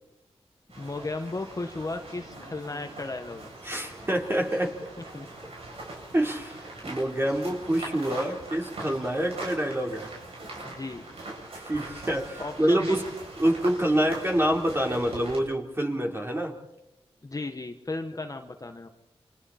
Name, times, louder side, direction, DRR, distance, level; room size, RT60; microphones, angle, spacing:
sound 1, 0.7-15.4, right 2 dB, 75° right, 8.0 m, -42 dB
voice 1, 0.8-3.5 5.1-5.3 8.8-8.9 10.6-11.0 12.4-13.0 17.2-18.9, left 2 dB, 35° left, 5 dB, 1.5 m, -35 dB
voice 2, 3.6-4.9 6.1-6.6 6.8-10.1 11.5-13.0 13.4-16.5, right 1 dB, 25° right, 1 dB, 4.0 m, -26 dB
30.0 x 25.5 x 4.4 m, 0.91 s
cardioid pair, 65°, 10 cm